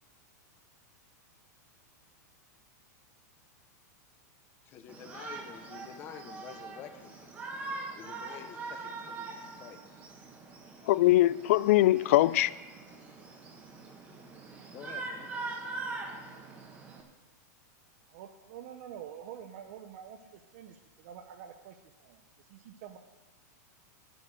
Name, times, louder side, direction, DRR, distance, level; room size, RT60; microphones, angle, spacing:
voice 1, 4.7-7.3 7.9-10.1 12.8-13.3 14.7-15.3, left 8 dB, 25° left, 8 dB, 0.8 m, -49 dB
Shout, 4.9-17.0, right 3 dB, 15° right, 1.2 m, -43 dB
voice 2, 10.9-12.5, left 16 dB, 50° left, 19 dB, 0.4 m, -22 dB
voice 3, 18.1-22.2 22.5-23.0, right 9 dB, 45° right, 5 dB, 0.7 m, -47 dB
9.9 x 7.9 x 7.5 m, 1.1 s
supercardioid pair, 165°, 10 cm